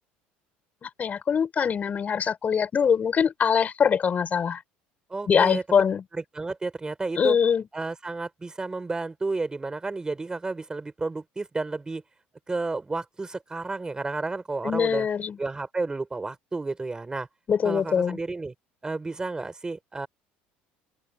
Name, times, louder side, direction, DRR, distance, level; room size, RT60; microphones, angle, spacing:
voice 1, 0.8-4.6 5.3-6.0 7.2-7.6 14.6-15.4 17.5-18.2, left 7 dB, 35° left, 6.1 m, -23 dB
voice 2, 5.1-5.6 6.1-7.4 7.7-12.0 12.5-15.1 15.4-17.3 17.6-18.5 18.8-20.1, right 3 dB, 15° right, 4.8 m, -31 dB
supercardioid pair, 105°, 5 cm